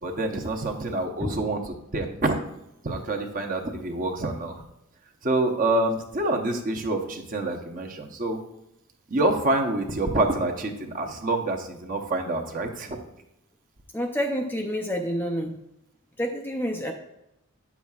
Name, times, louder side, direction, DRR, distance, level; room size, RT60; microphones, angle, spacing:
voice 1, 0.0-2.4 2.8-4.6 5.2-8.4 9.1-13.0, right 2 dB, 40° right, 3 dB, 0.8 m, -27 dB
voice 2, 13.9-15.6 16.2-16.9, equal, 10° left, 2 dB, 0.5 m, -28 dB
9.2 x 7.1 x 2.4 m, 0.86 s
head